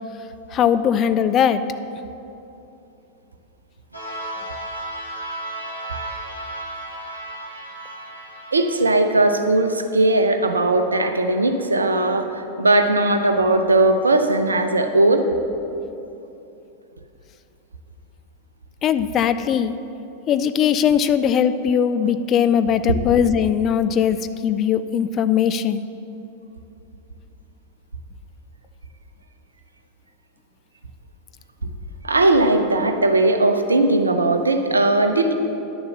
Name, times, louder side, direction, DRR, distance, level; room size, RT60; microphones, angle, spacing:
voice 1, 0.5-1.6 18.8-19.8 20.3-24.2 24.4-25.8, left 8 dB, 30° left, 12 dB, 0.4 m, -19 dB
sound 1, 3.9-9.1, right 1 dB, 85° left, 1.6 m, -34 dB
voice 2, 8.5-15.3 22.9-23.0 32.0-35.3, right 2 dB, 75° right, 6 dB, 0.7 m, -18 dB
10.5 x 7.0 x 6.7 m, 2.9 s
figure-of-eight pair, 90°, 0 cm